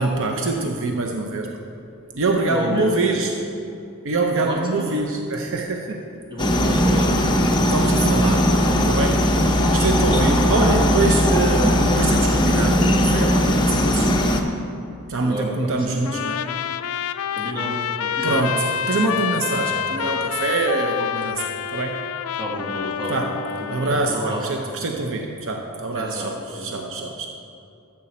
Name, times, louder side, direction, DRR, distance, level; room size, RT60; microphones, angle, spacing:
voice 1, 0.0-1.6 2.1-3.4 4.0-6.0 7.6-14.2 15.1-16.4 18.2-22.0 23.1-23.3 23.7-27.3, right 3 dB, 65° right, 2 dB, 0.7 m, -24 dB
voice 2, 2.5-3.2 4.4-5.0 5.9-6.0 6.3-7.2 9.3-9.8 10.1-10.5 15.2-16.0 17.3-18.5 22.4-23.3 23.6-24.4 25.9-26.8, right 1 dB, 20° right, -3 dB, 1.8 m, -31 dB
sound 1, 6.4-14.4, equal, 20° left, 0.7 m, -18 dB
Trumpet, 16.1-24.0, left 8 dB, 70° left, 0.3 m, -27 dB
13.5 x 7.6 x 4.3 m, 2.6 s
head